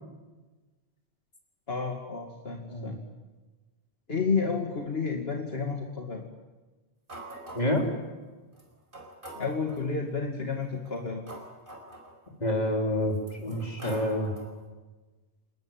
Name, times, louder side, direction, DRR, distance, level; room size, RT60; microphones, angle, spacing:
voice 1, 1.7-3.0 4.1-6.2 9.4-11.2, left 4 dB, 65° left, 2 dB, 2.5 m, -31 dB
sound 1, 7.1-7.9 8.6-8.7 8.9-9.9 10.7-12.6 13.1-14.6, right 1 dB, 50° right, 5.1 m, -44 dB
voice 2, 12.4-14.3, left 1 dB, 40° left, 2 dB, 4.2 m, -28 dB
27.5 x 20.0 x 9.1 m, 1.2 s
omnidirectional pair, 1.1 m